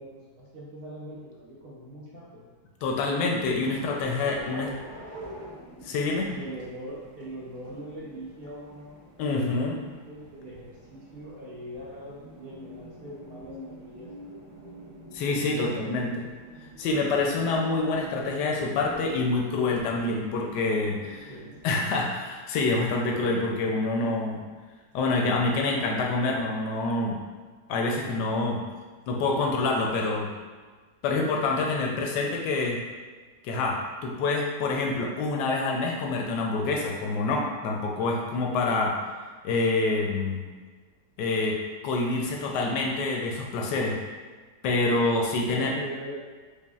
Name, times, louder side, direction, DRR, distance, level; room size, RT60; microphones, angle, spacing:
voice 1, 0.0-2.5 4.2-4.8 6.3-14.1 15.3-16.2 21.3-22.1 45.4-46.3, equal, 50° right, -7 dB, 0.7 m, -41 dB
voice 2, 2.8-4.7 5.8-6.3 9.2-9.7 15.1-16.1 16.8-21.3 21.6-24.4 24.9-27.2 27.7-28.6 29.1-30.3 31.0-32.8 33.4-39.0 39.4-40.5 41.2-41.6 41.8-44.0 44.6-45.7, left 3 dB, 90° left, 0 dB, 1.2 m, -26 dB
sound 1, 3.2-21.7, right 1 dB, 70° right, 1.5 m, -46 dB
4.8 x 2.5 x 2.3 m, 1.4 s
omnidirectional pair, 1.8 m